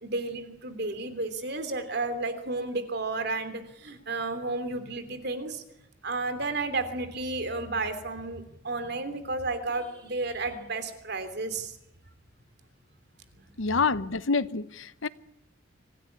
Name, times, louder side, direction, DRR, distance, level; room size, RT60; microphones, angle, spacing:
voice 1, 0.0-5.6 6.0-11.8, right 3 dB, 55° right, 3.2 m, -32 dB
voice 2, 13.6-15.1, left 4 dB, 80° left, 1.0 m, -27 dB
25.5 x 16.0 x 9.7 m
head